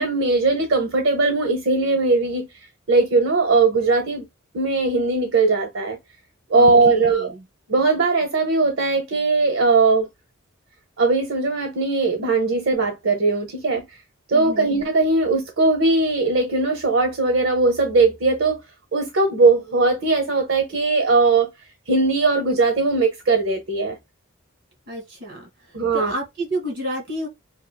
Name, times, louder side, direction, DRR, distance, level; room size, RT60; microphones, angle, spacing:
voice 1, 0.0-2.5 2.9-4.2 4.5-6.0 6.5-7.3 7.7-10.1 11.0-14.0 14.3-18.6 18.9-21.5 21.9-24.0 25.7-26.1, right 3 dB, 65° right, 0.7 m, -19 dB
voice 2, 6.5-7.4 14.3-14.8 24.9-27.3, right 1 dB, 50° right, 1.9 m, -30 dB
5.7 x 2.7 x 2.2 m
head